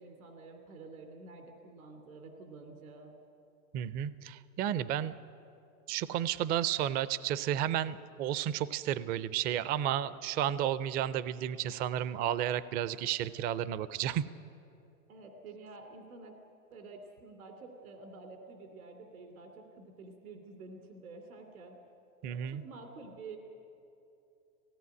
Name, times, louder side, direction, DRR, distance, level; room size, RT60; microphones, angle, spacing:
voice 1, 0.0-3.1 15.1-16.3 16.7-21.8 22.2-23.4, right 3 dB, 80° right, 5 dB, 2.9 m, -49 dB
voice 2, 3.7-5.1 5.9-14.2 22.2-22.6, right 11 dB, 25° right, 17 dB, 0.4 m, -32 dB
18.0 x 17.0 x 9.6 m, 2.7 s
hypercardioid pair, 125°, 42 cm